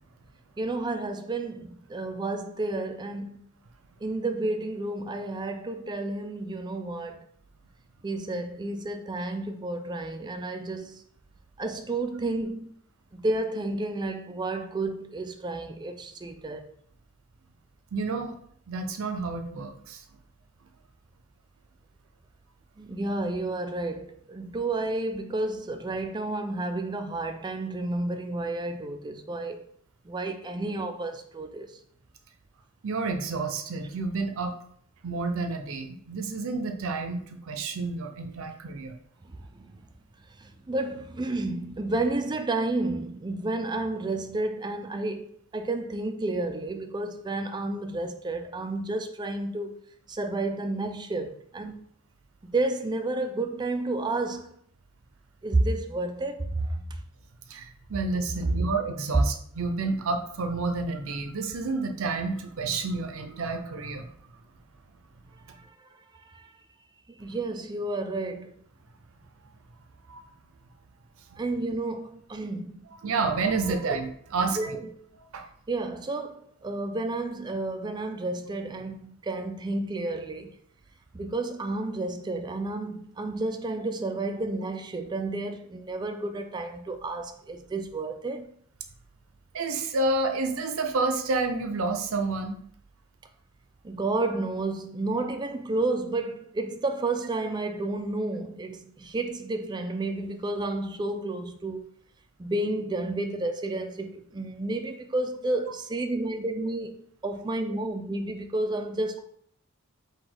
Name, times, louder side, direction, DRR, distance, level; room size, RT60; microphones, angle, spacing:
voice 1, 0.6-3.4 4.0-7.2 8.0-11.0 11.6-12.7 13.1-16.7 22.8-29.6 30.0-31.8 39.3-39.7 40.4-49.8 50.1-51.9 52.4-54.5 55.4-56.8 59.1-59.2 65.5-66.5 67.1-68.6 71.4-72.8 73.7-74.0 74.5-75.1 75.7-80.5 81.1-88.5 93.8-101.9 102.4-106.9 107.2-109.2, right 2 dB, 20° right, 0.3 m, -31 dB
voice 2, 17.9-18.4 18.7-20.0 32.8-34.5 35.0-38.9 57.5-64.1 70.1-70.2 71.3-71.4 73.0-74.8 75.3-75.4 89.5-92.6, right 3 dB, 65° right, 0.6 m, -29 dB
4.8 x 2.3 x 3.8 m
head